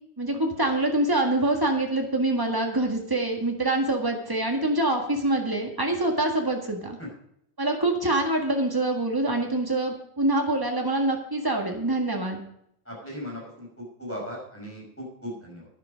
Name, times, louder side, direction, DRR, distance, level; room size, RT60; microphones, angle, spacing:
voice 1, 0.2-7.0 7.6-12.4, right 2 dB, 25° right, 2 dB, 0.4 m, -25 dB
voice 2, 12.9-15.7, equal, 5° left, -3 dB, 5.6 m, -38 dB
11.5 x 10.5 x 5.2 m, 0.71 s
omnidirectional pair, 3.7 m